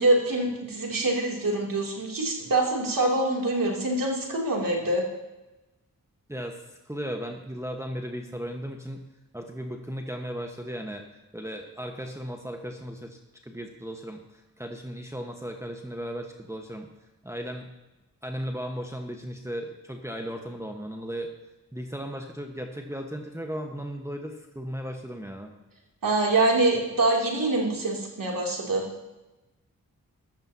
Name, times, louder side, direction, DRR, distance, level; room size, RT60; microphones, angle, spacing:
voice 1, 0.0-5.0 26.0-28.9, right 2 dB, 70° right, -1 dB, 3.2 m, -25 dB
voice 2, 6.3-6.6 6.8-9.0 9.3-11.0 11.3-16.9 17.2-17.7 18.2-21.3 21.7-25.5, equal, 10° right, 2 dB, 1.4 m, -36 dB
14.5 x 13.0 x 2.9 m, 1.0 s
cardioid pair, 40°, 35 cm